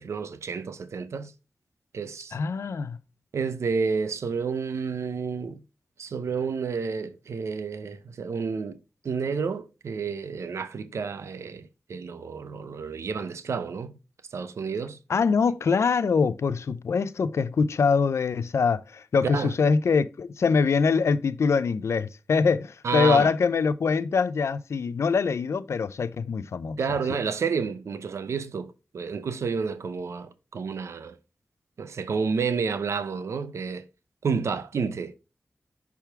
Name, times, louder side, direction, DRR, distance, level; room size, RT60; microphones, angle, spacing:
voice 1, 0.0-1.3 1.9-2.4 3.3-5.6 6.0-8.8 9.0-13.9 14.3-15.0 19.2-19.5 22.8-23.3 26.8-31.2 31.8-33.8 34.2-35.2, right 5 dB, 85° right, 0.5 m, -30 dB
voice 2, 2.3-3.0 15.1-26.8, left 5 dB, 75° left, 0.4 m, -24 dB
5.9 x 3.5 x 4.5 m
cardioid pair, 50°, 5 cm